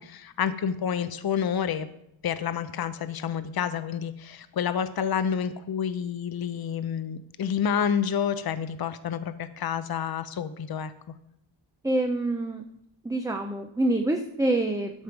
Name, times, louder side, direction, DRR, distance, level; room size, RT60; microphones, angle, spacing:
voice 1, 0.0-1.9 2.2-10.9, left 8 dB, 50° left, 12 dB, 0.6 m, -29 dB
voice 2, 11.8-12.6 13.0-15.0, right 2 dB, 5° right, 4 dB, 0.5 m, -26 dB
13.0 x 5.3 x 4.6 m, 0.79 s
wide cardioid pair, 135°, 47 cm